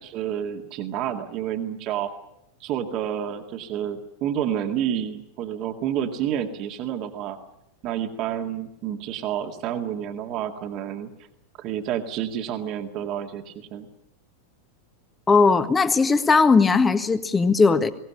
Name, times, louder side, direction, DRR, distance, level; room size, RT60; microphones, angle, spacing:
voice 1, 0.1-2.1 2.6-7.4 7.8-11.1 11.6-13.9, right 10 dB, 40° right, 6 dB, 2.0 m, -29 dB
voice 2, 15.3-17.9, left 4 dB, 15° left, 11 dB, 1.5 m, -18 dB
23.0 x 18.0 x 9.9 m, 0.84 s
figure-of-eight pair, 90°, 0 cm